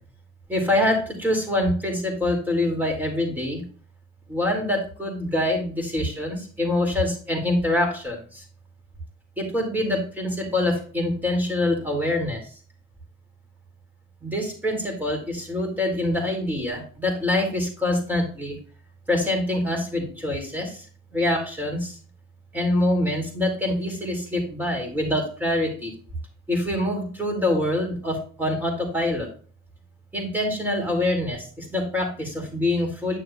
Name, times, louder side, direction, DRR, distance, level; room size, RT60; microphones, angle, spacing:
voice 1, 0.5-3.6 4.3-8.2 9.4-12.4 14.2-18.5 19.1-20.7 21.1-21.8 22.5-25.9 26.5-29.3 30.1-31.4 31.7-33.2, left 1 dB, 5° right, 0 dB, 4.6 m, -25 dB
11.5 x 6.4 x 3.1 m, 0.41 s
cardioid pair, 90°, 30 cm